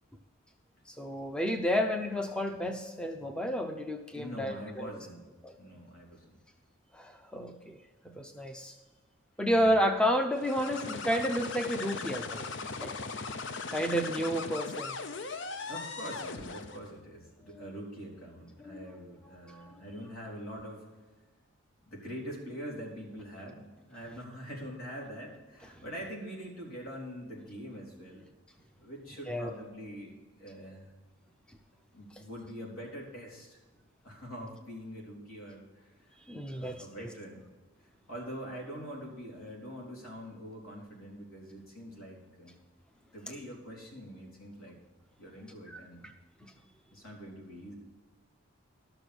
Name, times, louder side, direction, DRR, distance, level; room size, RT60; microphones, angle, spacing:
voice 1, 0.9-4.9 5.4-5.5 6.9-7.8 8.0-8.7 9.4-12.5 12.8-12.9 13.7-15.0 18.6-18.9 19.5-19.8 25.7-25.8 29.3-29.5 36.3-37.1 45.7-45.8 46.4-46.5, equal, 5° left, 6 dB, 0.6 m, -31 dB
voice 2, 4.1-5.2 5.6-6.4 9.5-9.7 15.7-20.9 21.8-28.3 28.8-30.1 30.4-30.9 31.9-33.6 34.0-36.2 36.5-37.4 38.1-42.5 43.1-44.8 45.2-46.1 46.9-47.7, equal, 85° left, -2 dB, 3.8 m, -44 dB
sound 1, 10.3-16.9, left 4 dB, 60° left, 0.7 m, -39 dB
12.5 x 6.8 x 6.2 m, 1.2 s
head